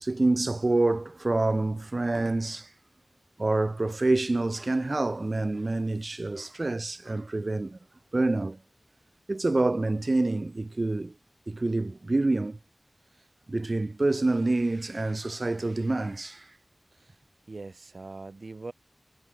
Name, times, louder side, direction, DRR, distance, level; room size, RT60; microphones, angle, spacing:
voice 1, 0.0-2.7 3.4-7.8 8.1-8.6 9.3-11.1 11.5-12.6 13.5-16.5, right 2 dB, 45° right, 0.6 m, -27 dB
voice 2, 17.5-18.7, right 3 dB, 65° right, 2.7 m, -42 dB
wide cardioid pair, 60°, 0 cm